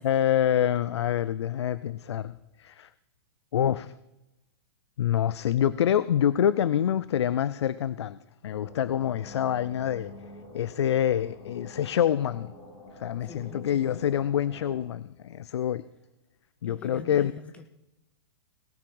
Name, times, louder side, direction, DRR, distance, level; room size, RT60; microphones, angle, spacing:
voice 1, 0.0-2.9 3.5-3.9 5.0-8.2 8.4-10.1 10.5-12.5 13.0-15.8 16.6-17.3, left 10 dB, 90° left, 18 dB, 0.5 m, -26 dB
sound 1, 8.5-14.8, left 2 dB, 30° left, 4.9 m, -47 dB
voice 2, 13.2-13.7 16.6-17.7, left 5 dB, 10° left, 9 dB, 0.4 m, -45 dB
18.5 x 8.6 x 4.9 m, 0.95 s
hypercardioid pair, 165°, 14 cm